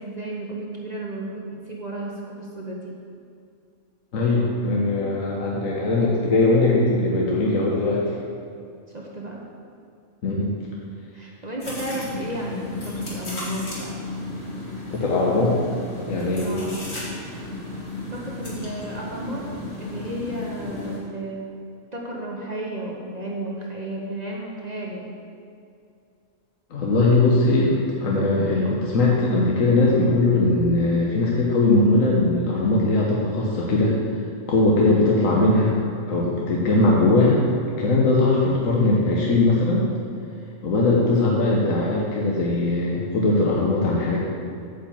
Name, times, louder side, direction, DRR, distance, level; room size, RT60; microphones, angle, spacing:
voice 1, 0.0-2.9 8.9-9.4 11.1-14.0 16.4-16.9 18.1-19.5 19.8-21.5 21.9-25.1, right 1 dB, 35° right, -2 dB, 1.1 m, -33 dB
voice 2, 4.1-8.2 10.2-10.5 14.9-15.5 16.1-16.5 26.7-34.0 34.5-35.7 36.1-37.4 37.8-39.8 40.6-44.2, left 2 dB, 70° left, -3 dB, 1.4 m, -20 dB
sound 1, 11.6-21.0, left 2 dB, 50° left, 2.4 m, -34 dB
8.8 x 5.2 x 7.1 m, 2.4 s
omnidirectional pair, 1.5 m